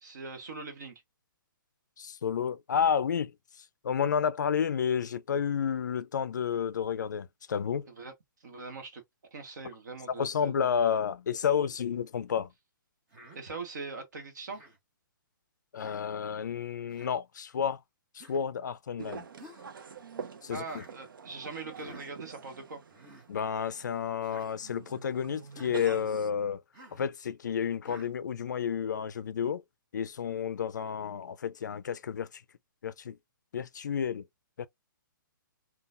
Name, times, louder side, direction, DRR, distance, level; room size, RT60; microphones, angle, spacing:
voice 1, 0.0-1.0 7.9-8.1 8.4-9.0 9.3-10.7 13.3-14.6 20.5-22.8, right 4 dB, 55° right, 1.2 m, -42 dB
voice 2, 2.0-7.9 10.2-12.5 15.7-17.8 18.1-19.3 20.4-20.8 23.3-26.6 26.9-29.6 29.9-32.4 32.8-33.2 33.5-34.3 34.6-34.7, left 7 dB, 55° left, 0.4 m, -31 dB
Human voice, 13.1-13.4 14.5-14.8 15.8-16.1 16.9-17.1 18.2-18.4 19.4-19.7 20.7-20.9 21.7-22.1 22.9-23.3 24.2-24.5 25.5-25.8 26.7-27.0 27.8-28.1, equal, 10° right, 0.4 m, -52 dB
sound 1, 19.0-26.3, right 6 dB, 75° right, 0.6 m, -46 dB
3.8 x 2.3 x 2.5 m
hypercardioid pair, 180°, 11 cm